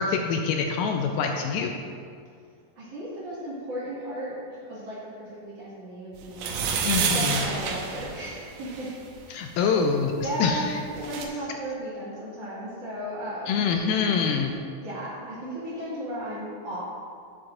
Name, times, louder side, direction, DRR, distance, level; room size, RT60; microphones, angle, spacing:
voice 1, 0.0-1.8 6.8-7.4 9.3-10.8 13.5-14.6, left 5 dB, 80° left, 3 dB, 2.1 m, -25 dB
voice 2, 2.8-8.9 9.5-9.8 10.2-13.6 14.8-16.8, equal, 50° right, -9 dB, 2.5 m, -35 dB
sound 1, 6.3-8.9 10.6-10.7 10.9-11.3, right 6 dB, 80° right, 2.1 m, -28 dB
8.6 x 8.1 x 2.5 m, 2.2 s
omnidirectional pair, 4.0 m